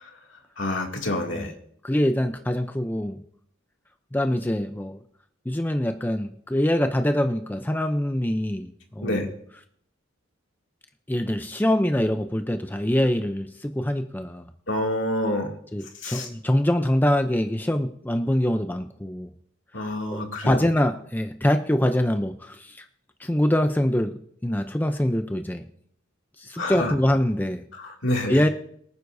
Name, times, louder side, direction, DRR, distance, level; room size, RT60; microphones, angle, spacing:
voice 1, 0.6-1.5 9.0-9.2 14.7-15.5 16.0-16.3 19.7-20.6 26.6-26.9 27.8-28.4, left 1 dB, 65° left, 0 dB, 2.5 m, -27 dB
voice 2, 1.8-3.2 4.1-5.0 5.5-9.3 11.1-14.5 15.7-19.3 19.8-22.8 23.2-25.6 26.4-27.6 28.3-28.5, left 1 dB, 10° left, 6 dB, 0.5 m, -24 dB
23.5 x 9.6 x 2.7 m, 0.65 s
head